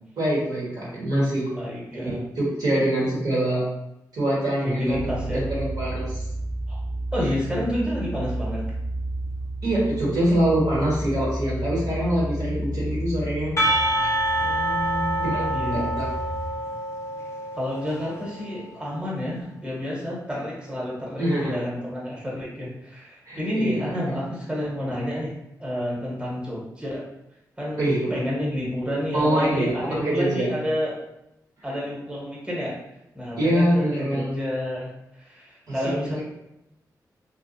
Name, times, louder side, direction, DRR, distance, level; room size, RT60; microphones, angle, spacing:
voice 1, 0.2-1.5 1.9-3.7 4.1-5.0 5.3-6.2 9.6-13.5 15.2-15.4 15.9-16.1 21.2-21.6 23.2-23.9 27.8-28.1 29.1-30.5 33.4-34.3 35.7-35.8 36.2-36.3, right 1 dB, 65° right, -6 dB, 1.2 m, -24 dB
voice 2, 1.5-2.2 4.6-5.4 6.7-6.8 7.1-8.6 14.4-15.9 17.5-25.3 25.6-27.0 27.6-27.8 28.1-30.9 31.6-32.8 33.1-34.9 35.2-36.2, equal, 15° right, -5 dB, 1.1 m, -29 dB
sound 1, 4.9-16.5, right 1 dB, 35° right, 0.6 m, -32 dB
Percussion, 13.6-18.4, right 1 dB, 45° left, 0.5 m, -26 dB
2.6 x 2.3 x 2.6 m, 0.86 s
cardioid pair, 60°, 7 cm